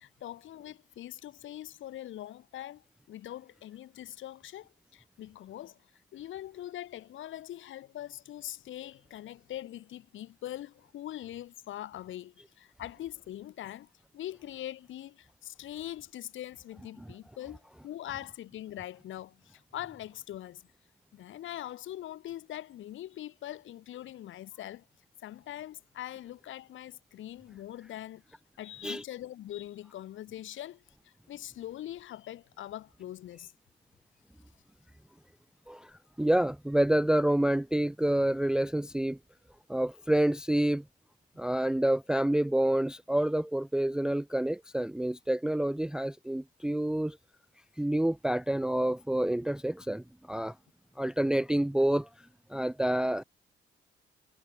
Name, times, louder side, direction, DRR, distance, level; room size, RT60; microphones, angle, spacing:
voice 1, 0.0-5.8 6.1-13.9 14.1-20.6 21.1-24.8 25.2-28.2 28.6-33.5, left 13 dB, 75° left, 2.5 m, -42 dB
voice 2, 36.2-39.2 39.7-40.8 41.4-47.2 47.8-50.5 51.0-52.1 52.5-53.2, right 1 dB, 5° right, 0.4 m, -28 dB
cardioid pair, 90°, 20 cm